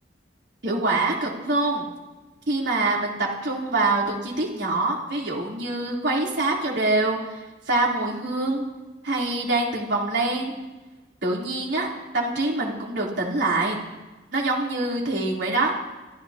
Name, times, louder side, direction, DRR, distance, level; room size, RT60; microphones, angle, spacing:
voice 1, 0.6-1.9 2.5-7.4 7.7-8.6 9.0-10.5 11.2-13.8 14.3-15.7, right 2 dB, 90° right, -2 dB, 3.6 m, -25 dB
26.5 x 14.5 x 2.9 m, 1.2 s
head